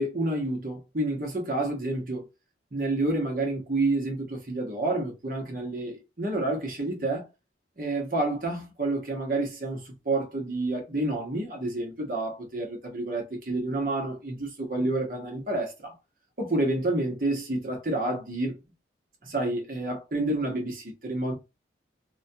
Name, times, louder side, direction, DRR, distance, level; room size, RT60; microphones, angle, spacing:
voice 1, 0.0-2.3 2.7-7.3 7.8-15.9 16.4-18.6 19.2-21.3, right 2 dB, 50° right, 0.9 m, -29 dB
2.4 x 2.2 x 2.6 m
head